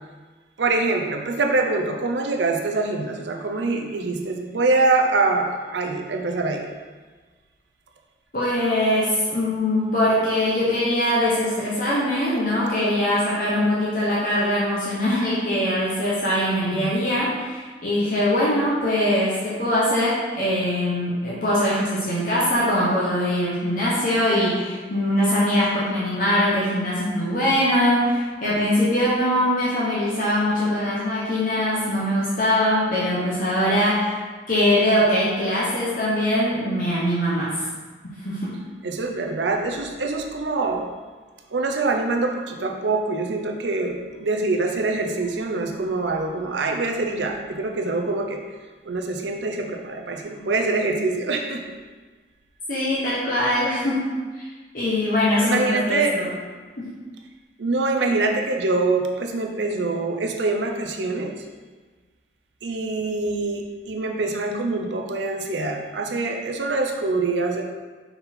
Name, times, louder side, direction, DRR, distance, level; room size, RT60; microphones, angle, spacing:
voice 1, 0.6-6.7 16.2-16.9 38.8-40.8 41.5-48.4 48.8-51.6 55.4-56.1 57.6-61.3 62.6-67.6, right 3 dB, 80° right, 3 dB, 0.7 m, -24 dB
voice 2, 8.3-34.2 34.5-37.5 38.2-38.6 52.7-54.1 54.4-54.5 54.7-56.3 56.8-56.9, left 1 dB, 50° left, -7 dB, 1.2 m, -22 dB
5.4 x 4.3 x 4.3 m, 1.4 s
head